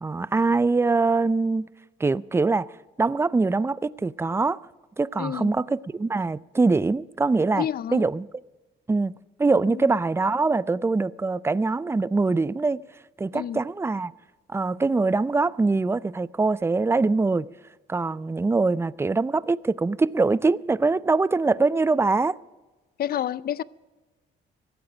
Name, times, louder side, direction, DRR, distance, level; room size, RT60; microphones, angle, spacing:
voice 1, 0.0-1.7 2.0-2.7 3.0-4.6 5.0-7.7 7.9-8.3 8.9-9.1 9.4-12.8 13.2-14.1 14.5-17.5 17.9-22.4, right 3 dB, 15° right, 0.4 m, -23 dB
voice 2, 5.2-5.5 7.5-8.1 9.6-9.9 13.3-13.6 23.0-23.6, left 10 dB, 50° left, 0.5 m, -29 dB
16.0 x 12.5 x 5.0 m
cardioid pair, 90°, 20 cm